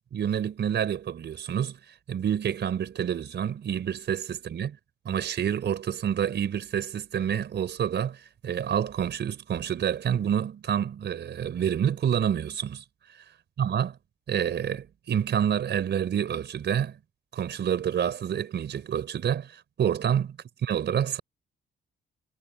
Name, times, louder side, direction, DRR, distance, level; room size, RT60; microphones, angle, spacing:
voice 1, 0.1-1.8 2.1-4.8 5.0-12.8 13.6-13.9 14.3-17.0 17.3-20.3 20.6-21.2, right 9 dB, 60° right, 4.7 m, -28 dB
cardioid pair, 90°, 20 cm